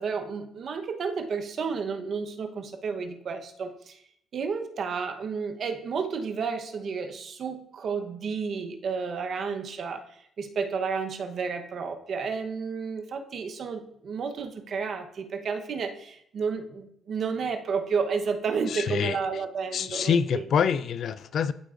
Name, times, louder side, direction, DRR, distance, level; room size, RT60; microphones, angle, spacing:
voice 1, 0.0-4.0 4.3-10.0 10.4-20.4, right 5 dB, 60° right, 0.9 m, -31 dB
voice 2, 18.7-19.2 19.7-21.5, left 7 dB, 65° left, 0.4 m, -26 dB
13.0 x 4.6 x 2.5 m
cardioid pair, 90°, 0 cm